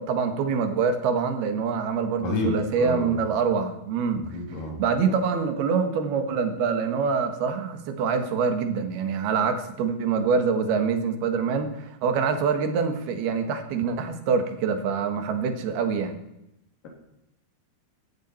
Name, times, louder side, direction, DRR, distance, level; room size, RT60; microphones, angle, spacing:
voice 1, 0.0-4.2 4.8-16.2, right 5 dB, 80° right, 7 dB, 3.5 m, -25 dB
voice 2, 2.2-3.2 4.1-4.8, left 2 dB, 60° left, 0 dB, 4.4 m, -29 dB
16.5 x 14.0 x 4.4 m, 0.87 s
omnidirectional pair, 4.4 m